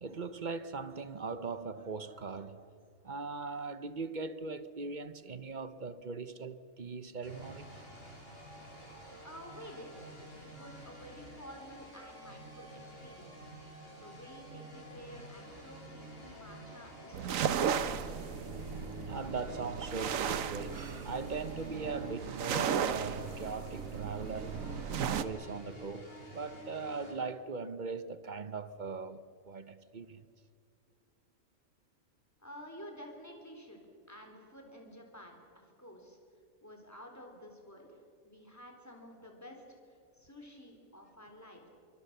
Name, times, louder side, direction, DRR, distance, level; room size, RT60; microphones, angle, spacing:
voice 1, 0.0-2.7 3.0-7.8 19.1-24.6 25.0-30.3, right 4 dB, 40° right, 0.9 m, -40 dB
sound 1, 7.2-27.1, equal, 40° left, 5.5 m, -50 dB
voice 2, 9.2-10.1 10.4-13.5 13.9-16.1 16.4-18.1 32.4-35.4 35.8-36.2 36.6-41.7, equal, 10° left, 3.8 m, -51 dB
sound 2, 17.1-25.2, right 8 dB, 70° right, 1.2 m, -35 dB
25.5 x 24.0 x 6.8 m
omnidirectional pair, 1.5 m